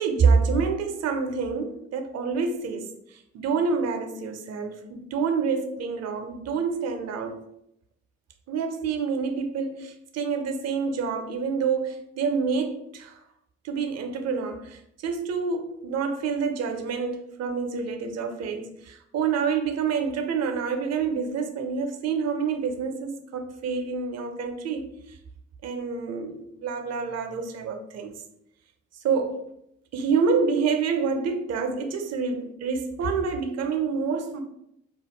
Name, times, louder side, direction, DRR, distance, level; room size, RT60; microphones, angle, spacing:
voice 1, 0.0-7.5 8.5-13.2 13.6-25.2 25.6-28.1 29.0-29.4 29.9-34.4, right 5 dB, 60° right, 0.6 m, -27 dB
2.4 x 2.1 x 3.6 m
supercardioid pair, 50°, 30 cm